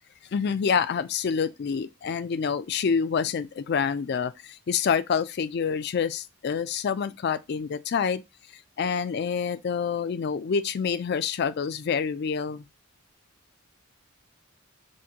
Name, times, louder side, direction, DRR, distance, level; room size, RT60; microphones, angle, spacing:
voice 1, 0.3-8.2 8.8-12.6, left 6 dB, 50° left, 0.3 m, -27 dB
6.2 x 2.2 x 2.8 m
head